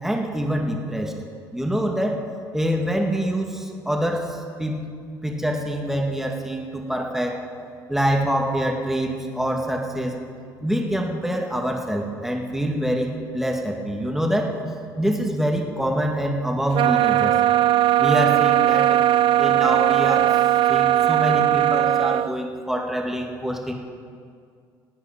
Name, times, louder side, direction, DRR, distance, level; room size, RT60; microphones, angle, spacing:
voice 1, 0.0-1.1 1.5-2.2 2.5-4.8 5.2-7.4 7.9-10.1 10.6-14.5 15.0-17.4 18.0-19.0 19.4-20.4 20.7-23.7, equal, 5° right, 1 dB, 2.3 m, -25 dB
sound 1, 16.7-22.3, right 13 dB, 60° right, 0.4 m, -18 dB
19.0 x 9.2 x 5.3 m, 2.3 s
hypercardioid pair, 60°, 10 cm